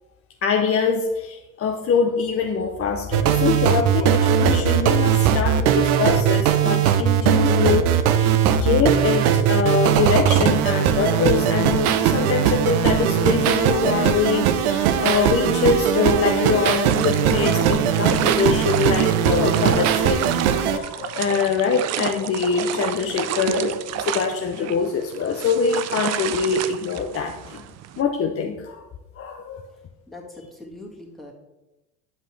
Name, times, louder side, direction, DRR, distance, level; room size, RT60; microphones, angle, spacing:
voice 1, 0.4-20.3 20.6-27.6 28.0-28.8 29.2-29.6, left 6 dB, 30° left, 3 dB, 0.7 m, -24 dB
sound 1, 3.1-20.8, right 9 dB, 75° right, 0.7 m, -19 dB
sound 2, 16.9-28.0, right 11 dB, 35° right, 0.5 m, -30 dB
voice 2, 30.1-31.3, left 2 dB, ahead, -3 dB, 2.0 m, -41 dB
9.4 x 5.5 x 3.2 m, 1.0 s
hypercardioid pair, 75°, 45 cm